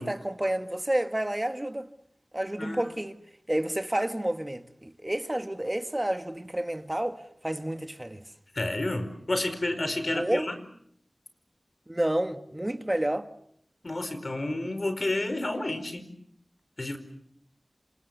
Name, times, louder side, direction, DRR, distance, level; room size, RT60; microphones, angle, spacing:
voice 1, 0.0-1.9 2.3-3.2 3.5-8.2 10.1-10.5 11.9-13.3, right 1 dB, 20° right, 1.8 m, -30 dB
voice 2, 2.6-2.9 8.5-10.6 13.8-16.1 16.8-17.0, left 2 dB, 55° left, 4.7 m, -30 dB
28.5 x 27.0 x 6.9 m
wide cardioid pair, 65°, 0 cm